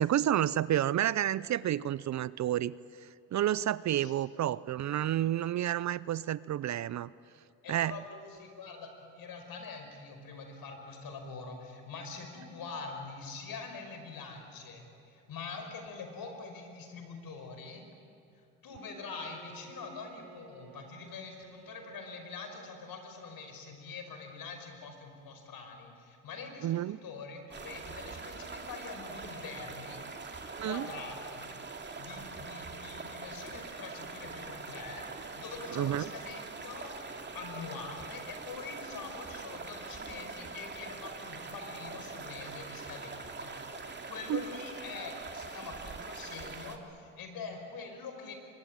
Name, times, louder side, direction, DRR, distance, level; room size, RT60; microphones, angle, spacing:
voice 1, 0.0-7.1 7.7-8.0 26.6-27.0 30.6-30.9 35.7-36.1 44.3-44.4, right 12 dB, 45° right, 19 dB, 0.6 m, -30 dB
voice 2, 7.6-17.8 18.6-36.9 37.3-48.3, left 4 dB, 55° left, 5 dB, 5.5 m, -44 dB
Bowed string instrument, 18.6-24.1, right 6 dB, 60° right, 3.3 m, -55 dB
sound 1, 27.5-46.8, right 4 dB, 25° right, 2.6 m, -43 dB
24.0 x 22.5 x 9.0 m, 2.6 s
supercardioid pair, 80°, 41 cm